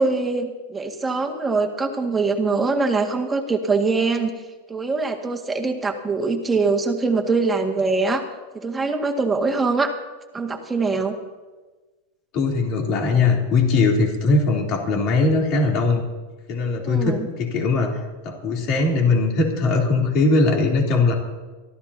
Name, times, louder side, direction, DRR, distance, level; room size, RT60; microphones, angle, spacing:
voice 1, 0.0-4.3 4.7-8.2 8.5-9.9 10.3-11.2 16.8-17.3, right 3 dB, 10° right, 2 dB, 2.0 m, -23 dB
voice 2, 12.3-16.0 16.5-21.1, left 3 dB, 45° left, 0 dB, 3.4 m, -20 dB
25.5 x 14.5 x 2.9 m, 1.2 s
supercardioid pair, 130°, 0 cm